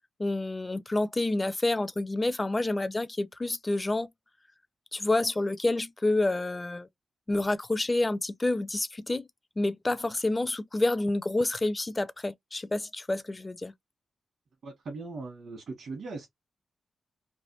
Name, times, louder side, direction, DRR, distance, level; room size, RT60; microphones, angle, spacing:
voice 1, 0.2-4.1 4.9-6.9 7.3-9.3 9.6-13.7, left 2 dB, 25° left, 0.4 m, -28 dB
voice 2, 14.6-16.3, right 3 dB, 75° right, 1.3 m, -39 dB
3.2 x 2.5 x 2.9 m
cardioid pair, 70°, 0 cm